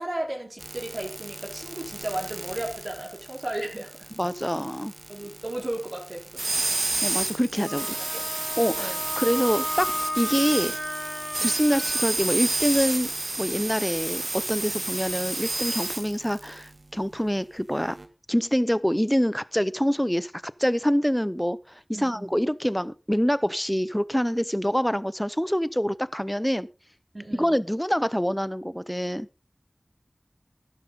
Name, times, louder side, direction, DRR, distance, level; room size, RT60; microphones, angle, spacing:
voice 1, 0.0-3.9 5.1-6.7 8.1-8.2 8.8-9.0 11.4-11.5 21.9-22.4 27.1-27.6, right 1 dB, 50° right, 3.9 m, -34 dB
sound 1, 0.6-16.5 18.0-18.1, right 2 dB, 65° right, 1.8 m, -31 dB
voice 2, 4.2-4.9 7.0-7.9 8.6-10.7 11.4-13.1 13.4-18.0 18.3-26.7 27.3-29.3, equal, 5° left, 0.6 m, -26 dB
Wind instrument woodwind instrument, 7.7-12.1, left 1 dB, 80° left, 4.0 m, -34 dB
12.5 x 11.0 x 3.9 m
wide cardioid pair, 50°, 0 cm